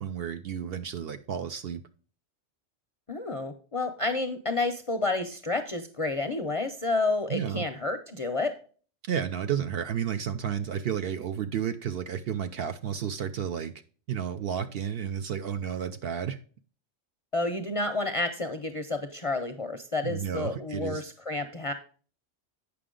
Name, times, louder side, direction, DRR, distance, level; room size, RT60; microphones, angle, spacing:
voice 1, 0.0-1.8 7.3-7.7 9.0-13.7 14.1-16.4 20.0-21.0, right 8 dB, 65° right, 9 dB, 0.7 m, -32 dB
voice 2, 3.1-8.5 17.3-21.7, left 2 dB, 40° left, 6 dB, 0.5 m, -30 dB
8.5 x 5.8 x 3.7 m, 0.40 s
omnidirectional pair, 1.3 m